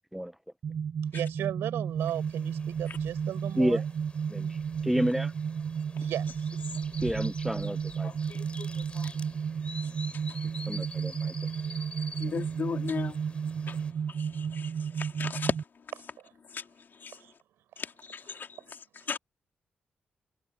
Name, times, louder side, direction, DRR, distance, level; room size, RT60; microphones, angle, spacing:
sound 1, 0.6-15.6, right 7 dB, 65° right, 5.2 m, -33 dB
voice 1, 1.1-3.9 6.0-6.5 15.9-16.3 17.1-17.3 18.2-18.4, right 12 dB, 90° right, 6.6 m, -36 dB
sound 2, 2.0-13.9, left 2 dB, 30° left, 7.0 m, -48 dB
voice 2, 4.8-5.3 7.0-8.1 10.7-11.3, equal, 5° right, 1.5 m, -29 dB
voice 3, 8.0-8.7 8.9-9.1 9.8-10.4 12.2-13.2 13.7-13.8 14.1-15.5 16.5-16.6 17.0-17.2 17.8-18.6 19.1-19.2, left 6 dB, 60° left, 3.4 m, -36 dB
supercardioid pair, 50°, 4 cm